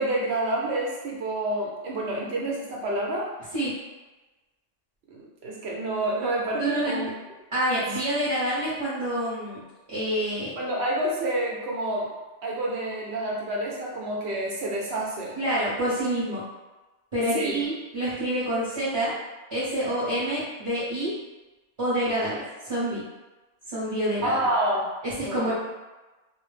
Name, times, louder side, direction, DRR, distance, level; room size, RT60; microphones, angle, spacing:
voice 1, 0.0-3.3 5.1-7.1 7.9-8.0 10.6-12.1 12.4-15.4 17.3-17.6 24.2-24.8 25.2-25.5, right 1 dB, 65° right, -4 dB, 0.8 m, -28 dB
voice 2, 6.6-7.0 7.5-9.6 9.9-10.6 15.4-16.4 17.1-19.1 19.5-21.1 21.8-23.0 23.7-24.5 25.0-25.5, right 1 dB, 30° right, -12 dB, 0.7 m, -27 dB
2.2 x 2.0 x 3.1 m, 1.2 s
omnidirectional pair, 1.3 m